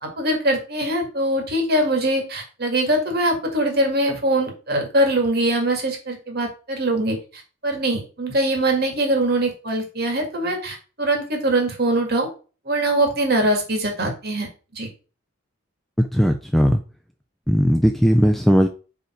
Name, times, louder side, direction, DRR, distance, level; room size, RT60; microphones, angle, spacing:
voice 1, 0.0-12.3 12.7-14.5 14.7-14.9, right 1 dB, 45° right, 2 dB, 1.9 m, -22 dB
voice 2, 16.0-16.8 17.5-18.7, equal, ahead, 5 dB, 0.3 m, -17 dB
5.0 x 4.8 x 4.4 m, 0.35 s
head